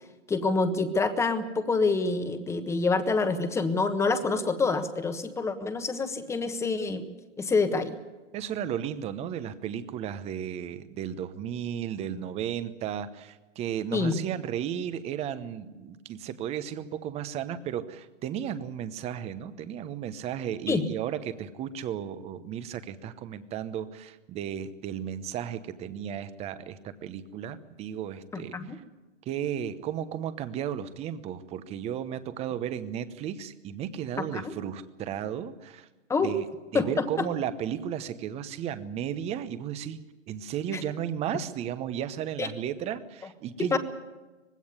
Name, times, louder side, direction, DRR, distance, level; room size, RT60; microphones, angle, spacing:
voice 1, 0.3-7.0 7.4-8.0 13.9-14.2 20.7-20.8 28.3-28.8 34.3-34.5 36.1-36.3 36.7-37.2 40.7-40.8 42.4-42.5 43.6-43.8, left 4 dB, 5° left, 9 dB, 1.3 m, -27 dB
voice 2, 8.3-28.8 29.3-35.9 36.2-36.5 36.7-40.0 40.3-43.8, right 9 dB, 15° right, 13 dB, 0.9 m, -34 dB
20.0 x 16.5 x 9.7 m, 1.2 s
hypercardioid pair, 140°, 36 cm